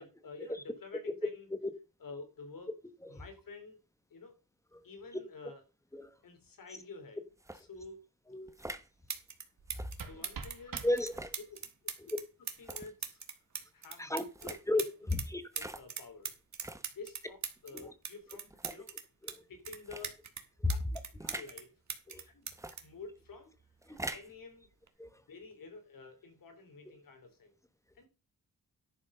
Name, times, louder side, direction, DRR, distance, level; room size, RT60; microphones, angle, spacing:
voice 1, 0.0-1.5 2.0-2.7 3.1-3.8 4.1-4.3 4.8-5.6 6.2-7.2 7.5-8.0 10.0-10.9 11.5-11.6 12.6-13.2 13.7-14.1 14.4-14.6 15.0-15.1 15.5-16.3 16.9-17.4 17.6-18.9 19.5-20.2 21.3-21.7 22.3-22.5 22.8-23.5 24.1-24.7 25.3-27.5 27.9-28.1, left 4 dB, 80° left, 3.6 m, -49 dB
sound 1, 7.4-7.6 8.5-8.9 9.7-9.9 11.0-11.4 12.6-12.9 14.3-14.6 15.5-15.9 16.6-16.9 17.6-17.7 18.5-18.9 19.8-20.1 21.2-21.5 22.5-22.8 23.8-24.3, right 1 dB, 10° right, 0.8 m, -44 dB
voice 2, 8.3-8.6 10.8-11.3 12.0-12.2 14.0-14.2 14.7-15.4 17.7-17.9 19.2-19.4 20.6-20.7 21.2-21.3 22.1-22.2 23.9-24.1 25.0-25.2, left 2 dB, 10° left, 1.3 m, -34 dB
sound 2, 9.1-9.4 9.7-15.3 15.6-19.4 19.7-21.6 21.9-23.7 24.7-24.9, right 6 dB, 55° right, 1.8 m, -41 dB
sound 3, 9.6-11.6, right 5 dB, 80° right, 2.0 m, -47 dB
11.0 x 6.2 x 5.6 m
wide cardioid pair, 130°, 33 cm